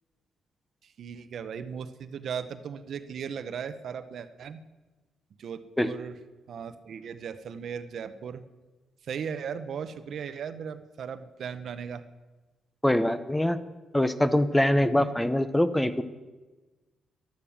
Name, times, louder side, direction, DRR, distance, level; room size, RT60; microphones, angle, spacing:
voice 1, 0.8-4.6 5.4-6.1 6.5-8.4 9.0-12.0, right 7 dB, 65° right, 11 dB, 0.9 m, -37 dB
voice 2, 12.8-13.6 13.9-16.0, left 1 dB, 10° left, 11 dB, 0.8 m, -23 dB
12.0 x 11.5 x 7.3 m, 1.2 s
cardioid pair, 105°, 0 cm